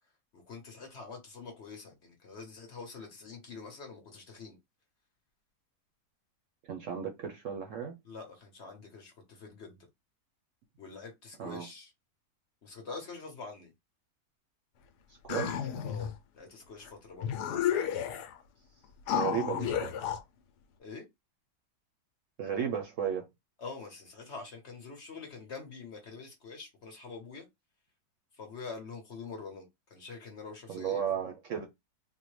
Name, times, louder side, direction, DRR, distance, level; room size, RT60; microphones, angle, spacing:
voice 1, 0.3-4.6 8.0-9.9 10.8-11.9 12.6-13.7 15.8-18.2 20.8-21.1 23.6-27.4 28.4-31.0, left 4 dB, 50° left, 1.0 m, -45 dB
voice 2, 6.7-7.9 11.4-11.7 15.2-15.6 19.1-19.9 22.4-23.2 30.7-31.6, right 8 dB, 65° right, 0.8 m, -34 dB
sound 1, 15.3-16.1 16.8-16.9 17.2-18.4 19.1-20.2, left 9 dB, 80° left, 1.2 m, -32 dB
3.6 x 2.1 x 3.1 m
omnidirectional pair, 1.7 m